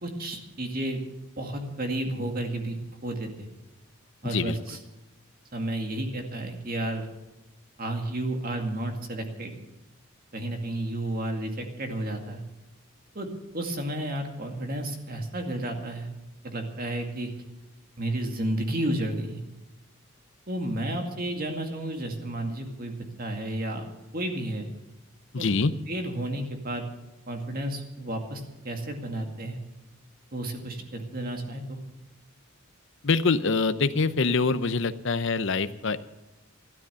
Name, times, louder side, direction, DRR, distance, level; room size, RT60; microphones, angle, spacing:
voice 1, 0.0-1.0 1.4-2.8 3.0-3.3 4.2-4.8 5.5-7.1 7.8-9.5 10.3-12.4 13.1-13.3 13.5-16.1 16.4-17.3 18.0-19.4 20.5-23.9 24.1-24.7 25.4-25.5 25.9-26.9 27.3-29.6 30.3-31.8, right 1 dB, 45° right, 4 dB, 2.2 m, -32 dB
voice 2, 4.2-4.6 25.3-25.7 33.0-36.0, left 4 dB, 60° left, 13 dB, 0.7 m, -25 dB
13.0 x 12.5 x 7.0 m, 1.0 s
head